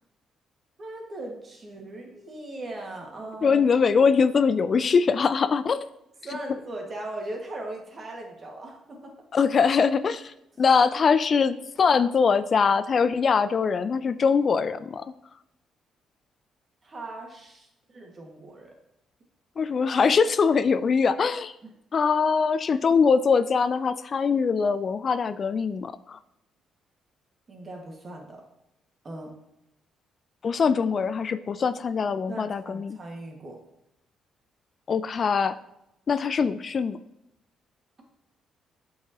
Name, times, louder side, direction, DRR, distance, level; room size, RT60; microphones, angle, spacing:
voice 1, 0.8-3.7 6.2-9.3 16.8-18.7 21.6-21.7 27.5-28.4 29.0-29.4 32.3-33.6, right 2 dB, 40° right, 1 dB, 1.8 m, -39 dB
voice 2, 3.4-5.9 9.3-15.0 19.6-21.5 21.9-26.2 30.4-33.0 34.9-35.6 36.1-37.0, left 5 dB, 50° left, 13 dB, 0.3 m, -22 dB
8.0 x 4.7 x 2.9 m, 0.83 s
supercardioid pair, 65°, 0 cm